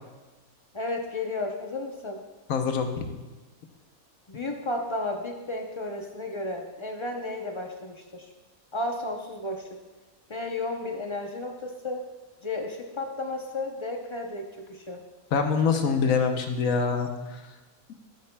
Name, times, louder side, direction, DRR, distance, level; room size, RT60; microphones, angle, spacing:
voice 1, 0.7-2.2 4.3-8.3 8.7-9.8 10.3-12.0 12.4-15.0, left 2 dB, 40° left, 2 dB, 0.4 m, -33 dB
voice 2, 2.5-2.9 15.3-17.1, left 5 dB, 70° left, 5 dB, 1.1 m, -24 dB
13.0 x 8.4 x 2.2 m, 1.2 s
omnidirectional pair, 1.6 m